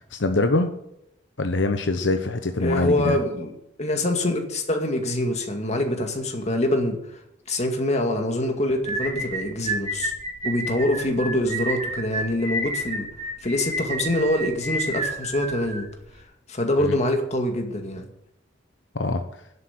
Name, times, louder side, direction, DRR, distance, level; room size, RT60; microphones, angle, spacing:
voice 1, 0.1-0.7 1.4-3.2 16.8-16.9 18.9-19.2, left 2 dB, 75° left, 7 dB, 0.9 m, -23 dB
voice 2, 2.6-3.5 3.8-7.0 7.5-10.1 10.4-13.1 13.4-15.9 16.5-18.0, left 1 dB, 40° left, 4 dB, 2.2 m, -25 dB
sound 1, 8.8-16.2, right 1 dB, 40° right, 2.8 m, -30 dB
11.0 x 8.0 x 8.7 m, 0.79 s
head